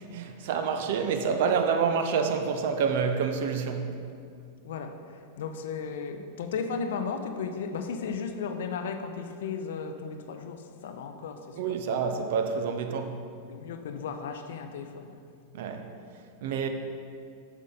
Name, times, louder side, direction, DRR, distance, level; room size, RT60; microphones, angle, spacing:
voice 1, 0.0-3.9 11.6-13.2 15.5-15.9 16.4-16.7, right 6 dB, 55° right, 0.6 m, -28 dB
voice 2, 4.6-12.0 13.5-15.2, left 5 dB, 60° left, 0.5 m, -35 dB
7.9 x 6.2 x 3.9 m
figure-of-eight pair, 90°, 0 cm